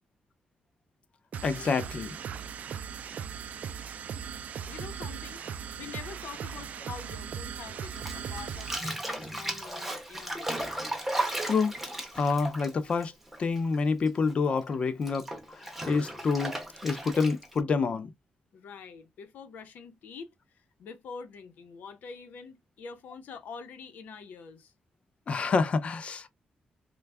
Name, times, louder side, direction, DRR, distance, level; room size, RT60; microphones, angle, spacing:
sound 1, 1.3-8.9, right 7 dB, 60° right, 0.4 m, -38 dB
voice 1, 1.4-2.1 11.5-11.7 12.1-13.1 13.4-15.3 15.9-16.6 16.8-18.1 25.3-26.3, left 4 dB, 45° left, 0.5 m, -27 dB
voice 2, 4.7-10.6 18.5-24.7, left 5 dB, 90° left, 0.8 m, -45 dB
Bathtub (filling or washing), 7.9-13.8 14.0-17.6, right 1 dB, 5° right, 0.6 m, -35 dB
3.3 x 2.3 x 3.3 m
wide cardioid pair, 150°, 3 cm